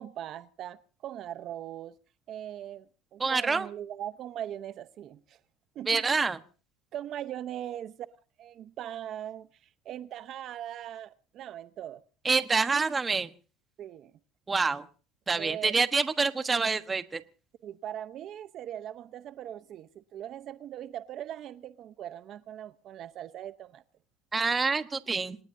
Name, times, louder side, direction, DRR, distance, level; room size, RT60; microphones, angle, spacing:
voice 1, 0.0-1.9 2.3-2.9 3.1-5.4 5.7-6.3 6.9-8.0 8.4-12.0 13.8-14.1 15.4-15.7 17.6-23.8, right 11 dB, 50° right, 12 dB, 0.8 m, -40 dB
voice 2, 3.2-3.7 5.9-6.4 12.2-13.3 14.5-14.8 15.3-17.2 24.3-25.4, right 4 dB, 20° right, 10 dB, 1.2 m, -27 dB
27.0 x 19.5 x 2.7 m, 0.38 s
supercardioid pair, 120°, 0 cm